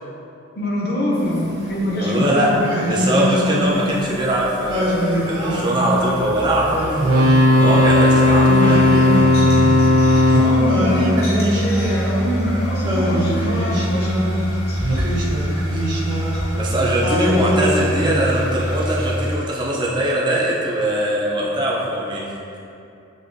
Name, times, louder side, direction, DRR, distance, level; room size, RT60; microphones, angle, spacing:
voice 1, 0.6-2.7 8.4-8.8 10.3-14.8 15.5-15.8, equal, 45° left, -3 dB, 0.6 m, -24 dB
sound 1, 1.1-19.4, equal, 85° left, 1.5 m, -27 dB
voice 2, 2.0-9.1 14.8-15.2 15.7-15.8 16.5-22.4, right 1 dB, 20° right, -4 dB, 0.4 m, -22 dB
Singing, 2.6-4.1 4.7-6.0 6.6-7.9 8.6-10.1 10.7-12.4 12.8-14.5 15.0-16.6 17.0-18.6, equal, 55° right, 1.0 m, -24 dB
sound 2, 7.0-12.0 14.8-14.9, left 1 dB, 85° right, 0.6 m, -16 dB
6.7 x 2.6 x 2.5 m, 2.7 s
head